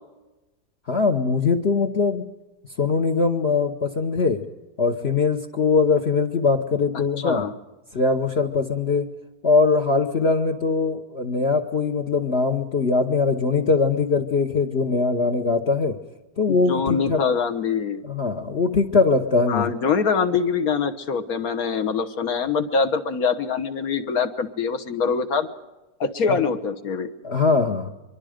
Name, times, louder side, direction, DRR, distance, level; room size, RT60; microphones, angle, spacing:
voice 1, 0.9-2.2 2.8-4.4 4.8-7.5 7.9-9.1 9.4-16.0 16.4-17.2 18.0-19.7 26.3-26.4 27.2-27.9, left 4 dB, 45° left, 7 dB, 1.2 m, -21 dB
voice 2, 6.9-7.5 16.5-18.0 19.5-25.5 26.0-27.1, left 5 dB, 60° left, 10 dB, 1.6 m, -24 dB
24.5 x 23.0 x 5.1 m, 1.1 s
omnidirectional pair, 1.8 m